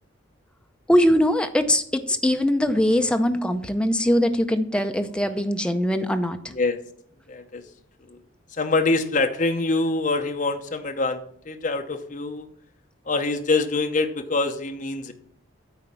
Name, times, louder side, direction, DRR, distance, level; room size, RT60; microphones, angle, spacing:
voice 1, 0.9-6.5, equal, 5° left, 7 dB, 0.5 m, -21 dB
voice 2, 7.3-7.6 8.0-8.2 8.5-12.5 13.1-15.1, left 3 dB, 40° left, 5 dB, 0.8 m, -25 dB
9.0 x 4.4 x 7.0 m, 0.65 s
head